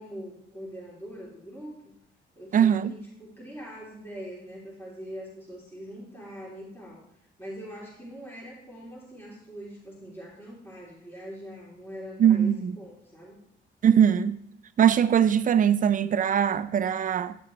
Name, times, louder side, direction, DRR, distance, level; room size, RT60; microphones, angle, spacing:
voice 1, 0.0-1.9 2.3-7.1 7.4-13.4, equal, 10° left, 3.2 m, -42 dB
voice 2, 2.5-2.9 12.2-12.7 13.8-14.4 14.8-17.4, right 9 dB, 45° right, 0.5 m, -21 dB
9.6 x 6.6 x 3.2 m
cardioid pair, 90°, 20 cm